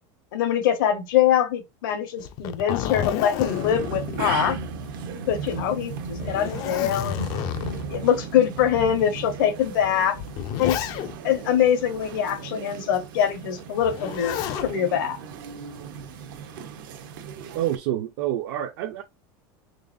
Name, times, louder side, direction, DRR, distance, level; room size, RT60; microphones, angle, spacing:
voice 1, 0.3-4.6 5.3-7.2 7.9-10.2 10.6-10.8 11.2-14.4 14.6-15.2, left 9 dB, 75° left, 1.0 m, -23 dB
Zipper (clothing), 2.2-5.1 5.5-5.6 6.1-8.0 8.7-8.8 9.8-11.4 13.8-14.7 16.1-16.6, left 11 dB, 35° left, 0.3 m, -31 dB
sound 1, 3.4-17.8, right 5 dB, 80° right, 0.7 m, -36 dB
voice 2, 17.5-19.0, right 12 dB, 45° right, 0.4 m, -27 dB
3.9 x 3.3 x 2.4 m
supercardioid pair, 180°, 11 cm